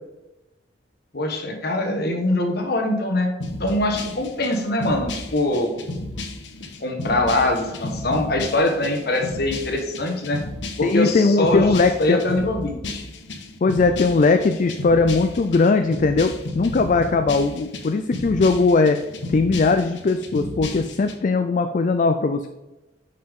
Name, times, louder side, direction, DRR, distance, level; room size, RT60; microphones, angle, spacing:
voice 1, 1.1-3.3 3.6-5.7 6.8-10.4 10.8-13.0, left 1 dB, 60° left, 3 dB, 1.4 m, -23 dB
sound 1, 3.4-21.1, left 2 dB, 85° left, 0.9 m, -33 dB
voice 2, 10.8-12.4 13.6-19.0 19.3-22.5, left 3 dB, 45° left, 7 dB, 0.4 m, -19 dB
9.0 x 5.6 x 3.6 m, 1.0 s
head